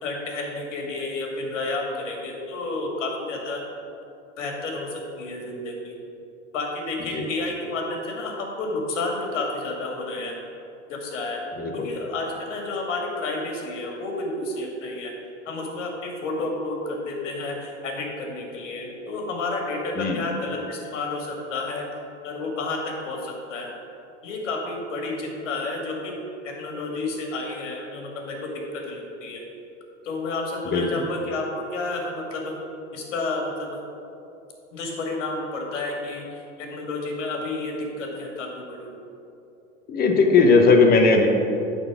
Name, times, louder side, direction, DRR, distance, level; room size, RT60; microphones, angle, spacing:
voice 1, 0.0-3.6 4.4-6.0 6.5-10.4 10.9-11.5 11.7-15.2 15.5-21.9 22.2-23.7 24.2-26.2 26.4-29.4 30.0-32.5 32.9-33.8 34.7-38.9, left 2 dB, 75° left, 1 dB, 2.0 m, -31 dB
voice 2, 30.7-31.0 39.9-41.3, left 4 dB, 25° left, 3 dB, 1.0 m, -18 dB
9.1 x 4.2 x 5.9 m, 2.8 s
hypercardioid pair, 115°, 37 cm